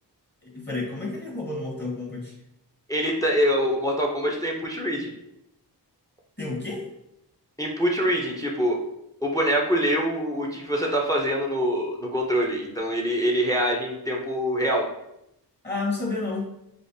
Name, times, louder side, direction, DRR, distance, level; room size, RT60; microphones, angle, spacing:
voice 1, 0.4-2.3 6.4-6.9 15.6-16.5, left 3 dB, 25° left, -3 dB, 1.1 m, -30 dB
voice 2, 2.9-5.1 7.6-8.8 9.2-14.9, equal, 10° left, 0 dB, 0.6 m, -24 dB
4.9 x 2.0 x 2.7 m, 0.83 s
cardioid pair, 50°, 41 cm